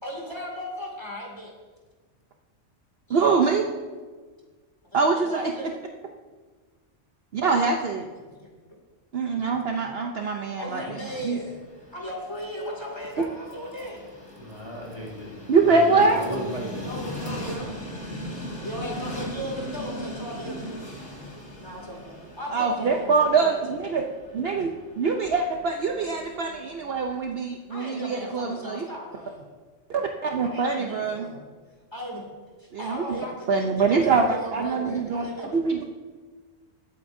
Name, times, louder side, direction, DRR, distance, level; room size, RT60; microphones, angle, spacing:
voice 1, 0.0-1.5 3.1-3.5 4.9-5.7 7.4-7.7 10.6-11.6 11.9-14.1 16.8-18.3 18.6-20.7 21.6-24.0 27.7-29.4 30.4-31.4 31.9-32.3 32.6-35.6, equal, 20° left, -2 dB, 2.5 m, -37 dB
voice 2, 3.1-3.6 4.9-5.4 7.3-8.0 9.1-10.8 11.2-11.4 15.5-16.2 22.5-24.0 24.3-24.7 25.0-28.9 29.9-31.3 32.7-33.0 33.5-34.3 34.5-35.8, right 4 dB, 55° right, 3 dB, 0.9 m, -24 dB
Train, 11.3-27.4, equal, 90° left, 2.7 m, -39 dB
voice 3, 14.4-17.3, right 1 dB, 30° right, -3 dB, 2.3 m, -35 dB
21.5 x 8.5 x 2.7 m, 1.4 s
omnidirectional pair, 1.3 m